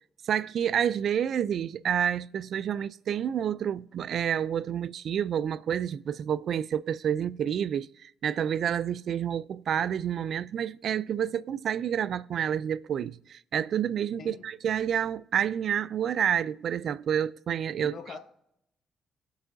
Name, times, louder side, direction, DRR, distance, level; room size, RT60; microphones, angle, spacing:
voice 1, 0.3-18.0, right 9 dB, 65° right, 0.4 m, -29 dB
voice 2, 17.8-18.2, left 5 dB, 65° left, 1.4 m, -42 dB
19.5 x 8.1 x 2.6 m
cardioid pair, 90°, 0 cm